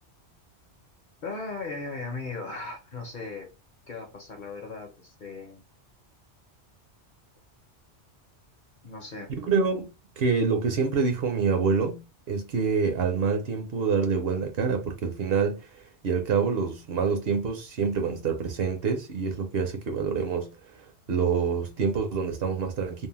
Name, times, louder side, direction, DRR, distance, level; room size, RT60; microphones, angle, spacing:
voice 1, 1.2-3.5 3.9-5.6 8.8-9.3, left 3 dB, 50° left, 0.7 m, -37 dB
voice 2, 9.4-9.9 10.2-12.0 12.3-15.7 16.0-20.5 21.1-23.1, right 5 dB, 65° right, 0.8 m, -26 dB
2.7 x 2.0 x 2.9 m
omnidirectional pair, 1.2 m